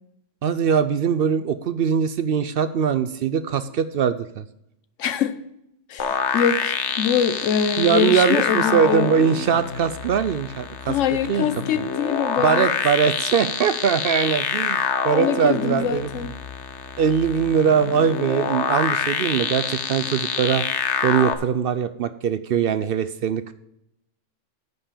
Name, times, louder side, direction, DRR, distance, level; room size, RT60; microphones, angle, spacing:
voice 1, 0.4-4.5 7.8-11.5 12.4-16.3 17.0-20.7 21.0-23.5, right 7 dB, 60° right, 0.6 m, -22 dB
voice 2, 5.0-5.3 5.9-9.1 10.9-12.7 15.1-16.3, left 8 dB, 90° left, 1.1 m, -24 dB
sound 1, 6.0-21.3, left 7 dB, 70° left, 1.1 m, -26 dB
9.4 x 5.7 x 6.7 m
omnidirectional pair, 1.3 m